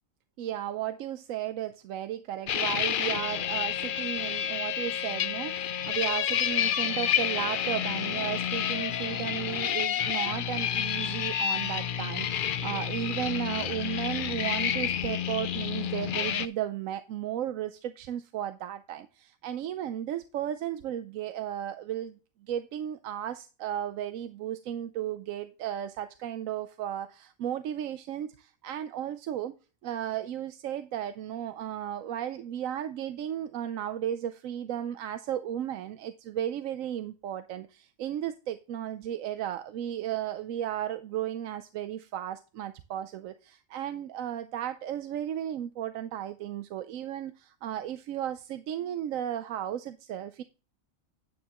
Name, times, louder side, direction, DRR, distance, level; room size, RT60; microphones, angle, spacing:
voice 1, 0.4-29.5 29.8-50.4, right 11 dB, 80° right, 10 dB, 1.0 m, -34 dB
sound 1, 2.5-16.5, left 9 dB, 65° left, 0.5 m, -29 dB
9.5 x 9.2 x 2.9 m, 0.33 s
omnidirectional pair, 1.4 m